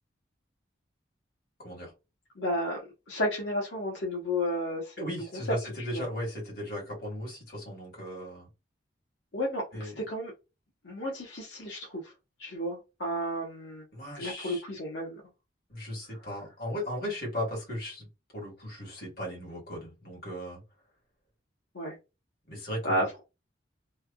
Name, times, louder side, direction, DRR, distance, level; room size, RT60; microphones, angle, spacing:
voice 1, 2.4-2.8 3.1-5.1 5.9-6.0 9.3-10.3 10.8-12.1 12.4-13.8 14.1-15.2 21.7-22.0 22.8-23.2, equal, 80° left, 1.0 m, -32 dB
voice 2, 5.0-8.5 9.7-10.1 13.9-14.6 15.7-18.1 18.3-20.6 22.5-23.0, equal, 50° left, 1.8 m, -37 dB
3.3 x 2.3 x 2.3 m
head